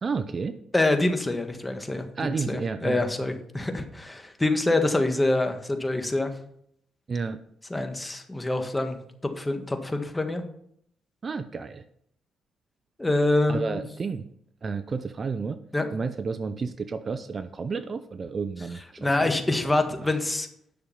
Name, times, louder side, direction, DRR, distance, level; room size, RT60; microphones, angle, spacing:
voice 1, 0.0-0.6 2.2-3.0 7.1-7.4 11.2-11.8 13.5-14.3 14.6-15.6 15.9-19.4, right 5 dB, 40° right, 11 dB, 0.6 m, -31 dB
voice 2, 0.7-2.1 2.5-6.3 7.7-9.0 9.4-10.4 13.0-13.8 15.7-15.9 19.0-20.5, left 2 dB, 15° left, 6 dB, 1.5 m, -25 dB
10.5 x 6.4 x 5.5 m, 0.69 s
cardioid pair, 90°, 0 cm